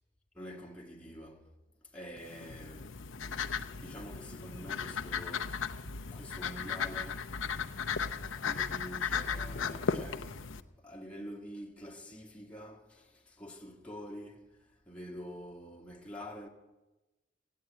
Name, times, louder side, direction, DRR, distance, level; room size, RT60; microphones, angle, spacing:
voice 1, 0.3-1.5 1.9-2.9 3.2-5.7 6.1-7.3 8.4-16.5, equal, 5° left, 1.7 m, -47 dB
sound 1, 2.2-10.6, left 6 dB, 80° left, 0.7 m, -36 dB
16.0 x 9.5 x 9.0 m
head